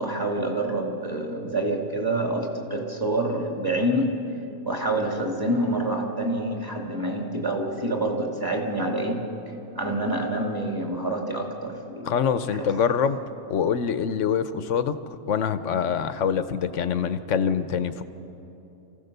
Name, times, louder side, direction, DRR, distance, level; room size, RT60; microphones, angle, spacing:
voice 1, 0.0-4.2 4.7-9.3 9.7-12.1 12.5-12.9, right 1 dB, 15° right, 1 dB, 2.3 m, -27 dB
voice 2, 12.0-13.2 13.5-14.9 15.3-18.0, left 7 dB, 60° left, 12 dB, 1.1 m, -25 dB
28.5 x 15.5 x 6.7 m, 2.9 s
omnidirectional pair, 1.5 m